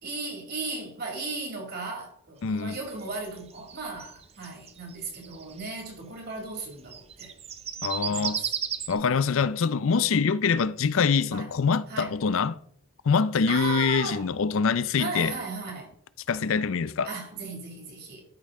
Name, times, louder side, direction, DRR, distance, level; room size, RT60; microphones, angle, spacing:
voice 1, 0.0-7.3 8.0-8.5 11.3-11.5 11.9-12.1 13.5-14.2 15.0-15.9 17.0-18.2, right 3 dB, 45° right, 2.4 m, -36 dB
voice 2, 2.4-2.8 7.8-8.4 8.9-12.6 13.0-15.3 16.3-17.1, left 5 dB, 65° left, 0.4 m, -24 dB
sound 1, 2.6-5.9 6.7-8.9, right 8 dB, 25° right, 0.5 m, -34 dB
13.0 x 5.4 x 3.7 m
head